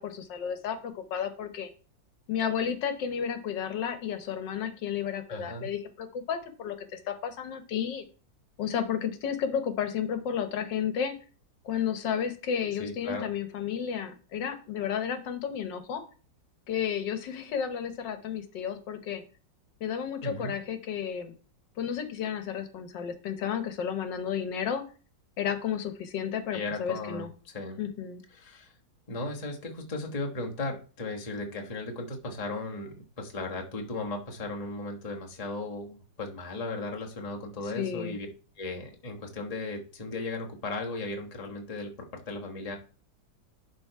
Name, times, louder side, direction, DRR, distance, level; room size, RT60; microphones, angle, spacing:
voice 1, 0.0-1.7 2.3-8.0 8.6-11.2 11.6-16.0 16.7-19.2 19.8-21.3 21.8-24.8 25.4-27.3 27.8-28.2 37.7-38.2, left 8 dB, 80° left, 8 dB, 1.6 m, -32 dB
voice 2, 5.3-5.7 12.8-13.3 20.2-20.5 26.5-27.8 28.3-28.7 29.1-38.3 38.6-42.8, left 2 dB, 25° left, 1 dB, 1.1 m, -36 dB
11.0 x 3.9 x 4.6 m, 0.38 s
omnidirectional pair, 1.9 m